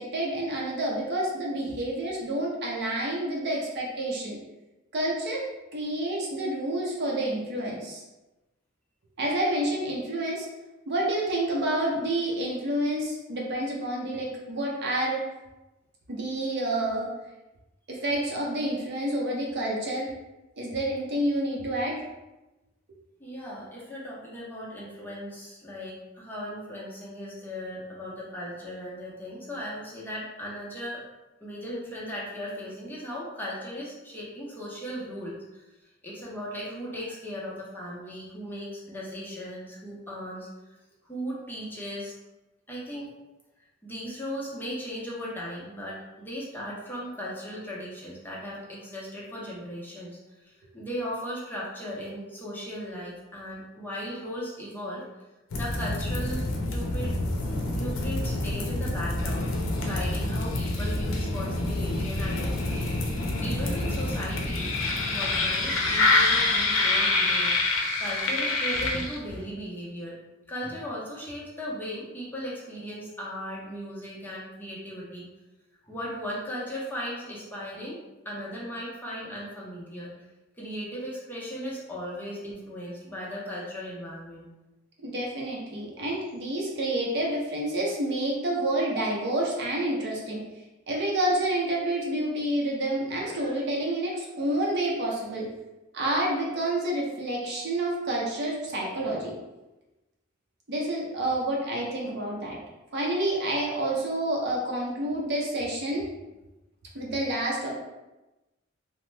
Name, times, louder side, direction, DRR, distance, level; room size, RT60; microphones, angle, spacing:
voice 1, 0.0-4.4 4.9-5.4 5.7-8.0 9.2-10.5 10.9-15.2 16.1-17.1 17.9-20.1 20.6-21.9 85.0-90.4 90.9-95.5 95.9-99.3 100.7-102.6 102.9-106.1 106.9-107.8, right 1 dB, 55° right, -3 dB, 0.7 m, -29 dB
voice 2, 23.2-31.0 31.4-40.5 41.0-42.1 42.7-43.1 43.8-55.0 55.5-57.2 57.7-59.5 59.8-67.5 68.0-70.1 70.5-75.3 75.8-78.0 78.2-80.1 80.6-84.5 93.2-93.6 94.6-94.7, equal, 10° left, -6 dB, 0.6 m, -37 dB
sound 1, 55.5-69.4, left 2 dB, 80° left, 0.5 m, -27 dB
3.0 x 2.1 x 3.2 m, 1.0 s
head